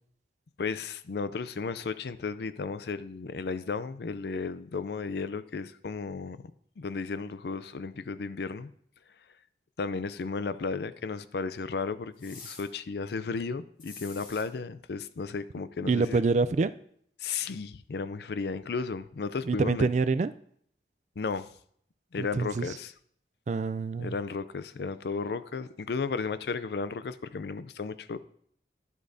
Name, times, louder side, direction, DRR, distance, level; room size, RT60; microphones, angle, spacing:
voice 1, 0.6-6.4 6.8-8.7 9.8-16.2 17.2-19.9 21.2-21.5 22.1-22.9 24.0-28.2, left 4 dB, 65° left, 0.4 m, -34 dB
sound 1, 12.2-12.7 13.8-14.4, left 4 dB, 50° left, 2.4 m, -46 dB
voice 2, 15.8-16.7 19.5-20.3 22.2-22.7 23.5-24.1, right 4 dB, 40° right, 0.3 m, -26 dB
12.0 x 8.2 x 2.7 m
head